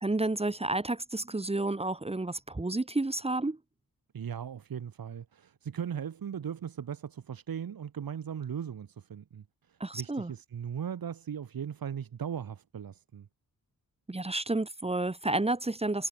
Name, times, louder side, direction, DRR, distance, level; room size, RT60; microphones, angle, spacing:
voice 1, 0.0-3.6 9.8-10.3 14.1-16.1, right 2 dB, 15° right, 1.4 m, -30 dB
voice 2, 4.1-13.3, right 8 dB, 75° right, 2.0 m, -38 dB
wide cardioid pair, 150°, 36 cm